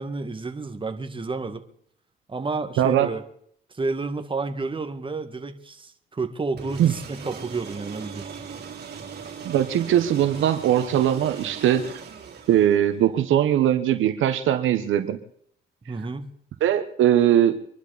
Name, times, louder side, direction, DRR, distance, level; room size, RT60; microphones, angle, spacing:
voice 1, 0.0-1.6 2.3-3.2 3.8-8.2 15.9-16.3, right 3 dB, 25° right, 7 dB, 1.9 m, -30 dB
voice 2, 2.8-3.1 6.8-6.9 9.4-11.9 12.5-15.2 16.6-17.5, right 11 dB, 80° right, 10 dB, 1.3 m, -20 dB
sound 1, 6.6-13.1, right 6 dB, 55° right, 3.6 m, -39 dB
25.0 x 11.5 x 4.3 m, 0.64 s
cardioid pair, 90°, 20 cm